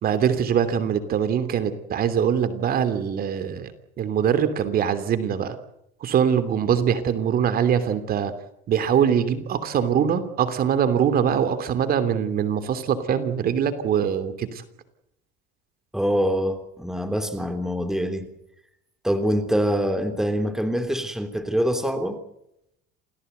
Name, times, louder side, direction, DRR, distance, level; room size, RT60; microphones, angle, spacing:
voice 1, 0.0-3.7 4.0-5.6 6.0-8.3 8.7-14.6, right 8 dB, 45° right, 11 dB, 3.0 m, -23 dB
voice 2, 15.9-18.3 19.0-22.2, equal, ahead, 8 dB, 3.1 m, -24 dB
28.5 x 18.0 x 8.1 m, 0.80 s
cardioid pair, 130°, 21 cm